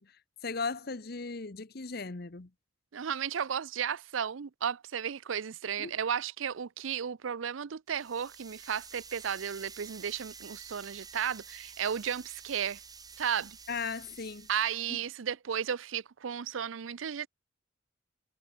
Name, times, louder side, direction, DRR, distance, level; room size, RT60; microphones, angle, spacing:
voice 1, 0.0-2.5 5.8-6.0 13.7-14.5 14.9-15.0, left 4 dB, 50° left, 1.0 m, -37 dB
voice 2, 2.9-12.8 13.2-13.6 14.5-17.3, right 8 dB, 85° right, 0.5 m, -34 dB
sound 1, 7.9-15.1, right 6 dB, 20° right, 3.8 m, -50 dB
head